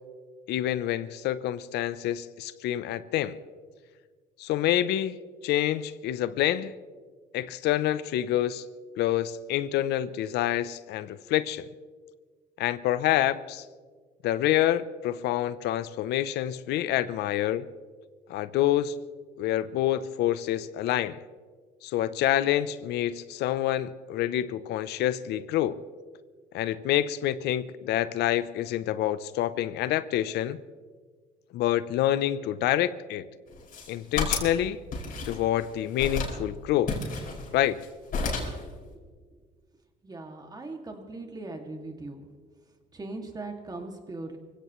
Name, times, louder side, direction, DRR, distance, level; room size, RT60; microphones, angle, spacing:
voice 1, 0.5-3.4 4.4-5.2 5.4-6.7 7.3-8.6 9.0-11.7 12.6-13.6 14.2-17.7 18.3-18.9 19.4-21.2 21.8-25.8 26.5-30.6 31.5-33.2 33.9-34.8 35.2-37.0 37.5-37.8, left 12 dB, 80° left, 15 dB, 0.6 m, -27 dB
sound 1, 33.5-34.6 34.9-35.6 36.0-36.4 36.9-37.9 38.1-38.6, left 4 dB, 60° left, 5.3 m, -31 dB
voice 2, 40.0-42.3 42.9-44.4, right 2 dB, 25° right, 4 dB, 2.2 m, -39 dB
25.5 x 16.5 x 3.1 m, 1.5 s
cardioid pair, 110°, 17 cm